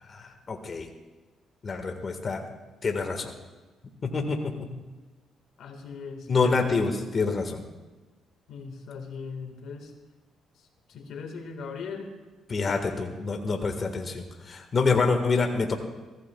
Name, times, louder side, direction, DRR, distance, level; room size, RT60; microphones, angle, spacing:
voice 1, 0.1-0.9 1.6-2.4 2.8-3.3 4.0-4.7 6.3-7.6 12.5-15.7, left 4 dB, 40° left, 4 dB, 1.6 m, -27 dB
voice 2, 5.6-6.6 8.5-9.9 10.9-12.1, left 5 dB, 75° left, 5 dB, 1.7 m, -39 dB
23.0 x 15.5 x 2.3 m, 1.2 s
cardioid pair, 90°, 0 cm